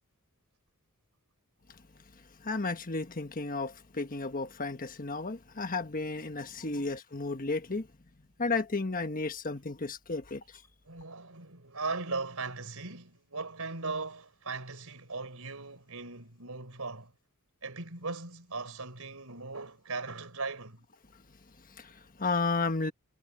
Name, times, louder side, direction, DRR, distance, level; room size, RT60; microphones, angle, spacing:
voice 1, 2.4-7.9 8.4-10.6 21.7-22.9, left 3 dB, 40° left, 1.4 m, -33 dB
voice 2, 10.9-17.1 17.6-20.9, right 3 dB, 75° right, 4.6 m, -38 dB
head